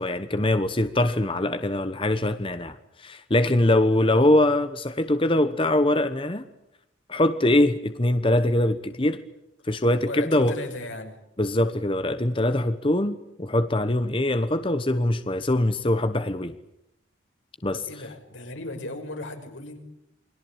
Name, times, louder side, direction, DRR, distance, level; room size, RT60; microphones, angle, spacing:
voice 1, 0.0-6.4 7.1-9.2 9.6-10.5 11.4-16.6 17.6-17.8, left 1 dB, 25° left, 10 dB, 1.1 m, -23 dB
voice 2, 10.0-11.2 17.7-19.8, left 2 dB, 85° left, 4 dB, 6.0 m, -36 dB
28.5 x 22.0 x 8.9 m, 0.82 s
head